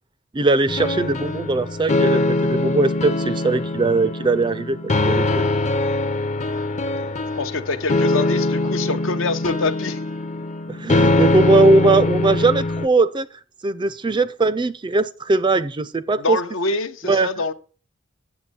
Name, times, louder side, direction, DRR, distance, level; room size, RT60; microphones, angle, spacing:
voice 1, 0.3-5.4 10.7-13.3 13.6-16.4 17.1-17.3, right 3 dB, 25° right, 0.4 m, -20 dB
sound 1, 0.7-12.9, left 2 dB, 35° left, 0.7 m, -22 dB
voice 2, 7.4-10.0 16.2-17.5, left 3 dB, 70° left, 0.8 m, -25 dB
8.5 x 7.3 x 4.3 m
head